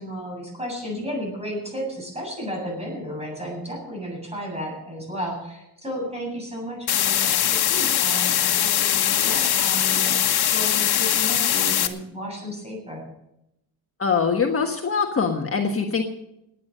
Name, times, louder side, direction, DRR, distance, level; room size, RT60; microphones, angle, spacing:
voice 1, 0.0-13.0, equal, 15° right, 0 dB, 8.0 m, -33 dB
sound 1, 6.9-11.9, left 10 dB, 70° left, 1.4 m, -21 dB
voice 2, 14.0-16.0, left 5 dB, 35° left, 2 dB, 1.4 m, -23 dB
18.0 x 9.4 x 6.6 m, 0.84 s
cardioid pair, 125°, 39 cm